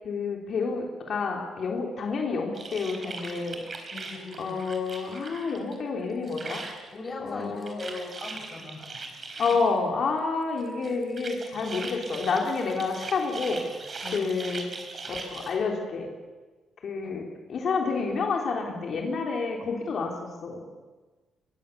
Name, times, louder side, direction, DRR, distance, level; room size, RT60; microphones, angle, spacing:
voice 1, 0.0-3.6 4.4-6.6 7.2-7.8 9.4-13.6 14.1-14.7 15.1-16.1 16.8-20.6, left 4 dB, 55° left, 0 dB, 3.7 m, -29 dB
sound 1, 2.5-5.8 6.0-6.9 7.3-9.7 10.6-15.6, right 3 dB, 40° right, 4.4 m, -40 dB
voice 2, 3.9-4.6 6.9-9.0 9.3-9.4 14.0-14.2, left 3 dB, 35° left, 1 dB, 6.8 m, -39 dB
22.5 x 22.5 x 7.0 m, 1.3 s
cardioid pair, 90°, 0 cm